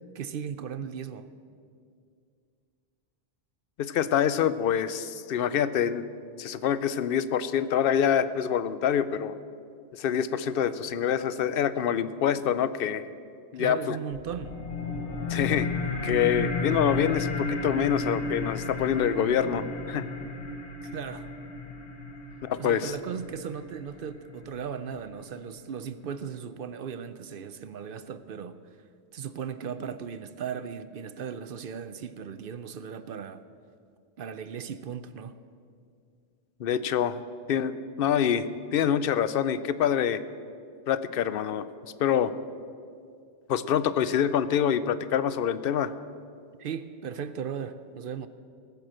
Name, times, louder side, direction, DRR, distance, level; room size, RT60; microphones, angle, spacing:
voice 1, 0.1-1.3 13.6-14.6 20.8-21.3 22.6-28.6 29.1-33.4 34.2-35.4 46.6-48.3, right 7 dB, 60° right, 13 dB, 0.7 m, -37 dB
voice 2, 3.8-6.0 6.4-9.3 9.9-13.0 13.5-14.0 15.3-15.7 16.0-20.1 22.4-22.9 36.6-37.2 37.5-40.2 40.9-41.6 42.0-42.3 43.5-45.9, left 8 dB, 65° left, 14 dB, 0.8 m, -26 dB
sound 1, 14.1-25.1, left 3 dB, 85° left, 1.6 m, -33 dB
18.0 x 7.9 x 7.5 m, 2.3 s
omnidirectional pair, 1.1 m